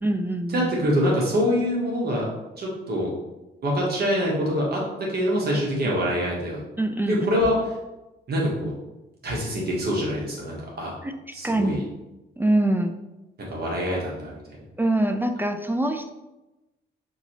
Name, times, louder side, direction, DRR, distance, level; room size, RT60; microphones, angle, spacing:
voice 1, 0.0-0.7 6.8-7.2 11.0-11.1 11.4-11.8 12.4-13.0 14.8-16.1, right 1 dB, 10° right, 6 dB, 0.3 m, -24 dB
voice 2, 0.5-2.3 2.6-3.1 3.6-6.6 7.1-7.5 8.3-8.7 9.2-10.9 11.3-11.8 13.5-14.4, equal, 50° right, -3 dB, 1.2 m, -25 dB
5.9 x 2.7 x 2.9 m, 1.0 s
cardioid pair, 90°, 20 cm